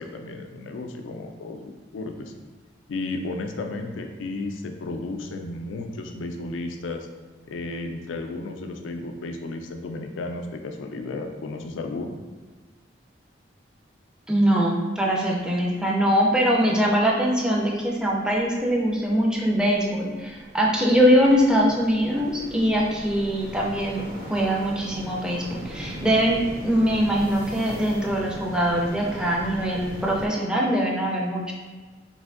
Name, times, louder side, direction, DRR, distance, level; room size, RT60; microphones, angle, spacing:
voice 1, 0.0-2.3 2.9-7.1 7.5-12.2, left 2 dB, 90° left, 4 dB, 0.3 m, -33 dB
voice 2, 14.3-31.5, equal, 5° right, -2 dB, 0.4 m, -22 dB
sound 1, 15.8-15.9 16.2-30.3, equal, 55° right, 0.7 m, -40 dB
3.3 x 2.5 x 2.4 m, 1.4 s
head